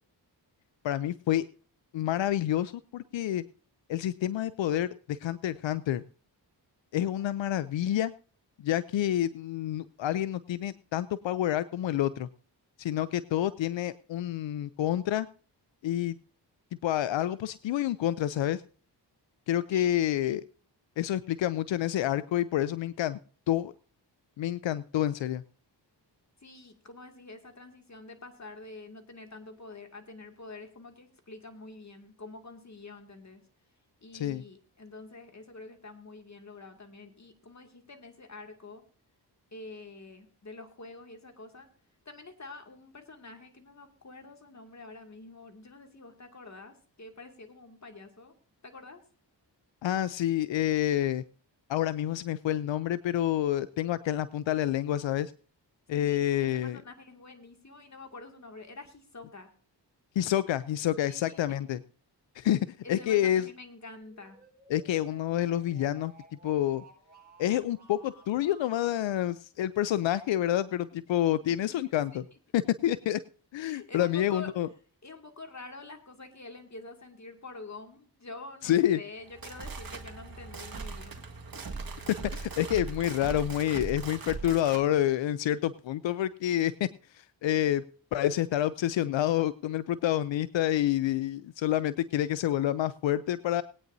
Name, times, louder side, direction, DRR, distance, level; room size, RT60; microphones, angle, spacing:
voice 1, 0.8-1.4 1.9-3.4 3.9-6.0 6.9-8.1 8.6-12.3 12.8-15.3 15.8-16.2 16.8-18.6 19.5-20.4 21.0-23.2 23.5-23.7 24.4-25.4 34.1-34.4 49.8-51.2 51.7-55.3 55.9-56.8 60.2-61.8 62.4-63.5 64.7-66.1 66.4-66.8 67.4-72.2 72.5-73.2 73.5-74.7 78.6-79.0 82.3-87.8 88.1-93.6, left 12 dB, 85° left, 16 dB, 0.6 m, -28 dB
voice 2, 26.4-33.4 34.0-38.8 39.5-41.7 42.1-48.3 48.6-49.0 56.0-59.5 61.0-61.6 62.8-64.4 71.5-72.2 73.6-74.5 75.0-81.3 81.7-81.8, left 3 dB, 40° left, 5 dB, 2.3 m, -47 dB
sound 1, 64.0-69.0, right 2 dB, 25° right, 7.3 m, -55 dB
sound 2, 79.2-84.9, right 4 dB, 50° right, 1.8 m, -40 dB
20.5 x 9.2 x 2.7 m, 0.41 s
cardioid pair, 60°, 44 cm